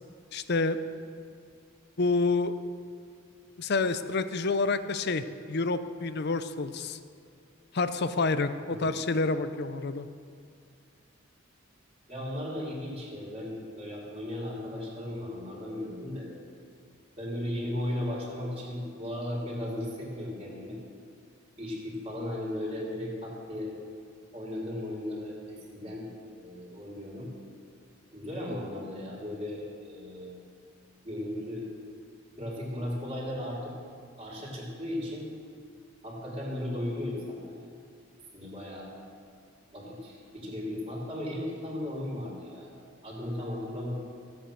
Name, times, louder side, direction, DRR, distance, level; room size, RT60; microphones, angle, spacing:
voice 1, 0.3-0.8 2.0-2.5 3.6-7.0 7.7-10.1, left 3 dB, 50° left, 11 dB, 0.6 m, -28 dB
voice 2, 12.1-16.3 17.2-20.8 21.6-23.7 24.3-27.3 28.1-30.3 31.0-31.7 32.4-33.7 34.2-35.3 36.0-37.7 38.3-38.9 39.7-42.7 43.0-43.9, left 1 dB, 25° right, -3 dB, 3.2 m, -36 dB
16.0 x 8.0 x 7.7 m, 2.2 s
head